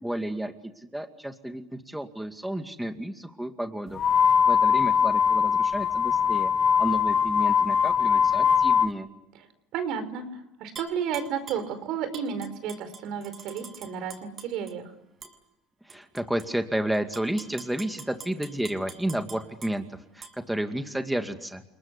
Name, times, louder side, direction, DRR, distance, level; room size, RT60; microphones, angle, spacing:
voice 1, 0.0-4.0 4.5-6.5 6.8-9.1 15.8-19.8 20.1-21.6, right 1 dB, 5° right, 6 dB, 2.3 m, -31 dB
sound 1, 3.9-8.9, left 7 dB, 40° left, 2.0 m, -22 dB
voice 2, 9.7-10.2 10.6-14.9, right 7 dB, 65° right, 11 dB, 5.0 m, -32 dB
Tap / Glass, 10.8-11.7 12.1-14.7 15.2-15.3 15.9-16.5 16.9-19.7 20.2-20.3, right 5 dB, 35° right, 6.7 m, -44 dB
30.0 x 19.5 x 9.8 m, 0.91 s
supercardioid pair, 95°, 0 cm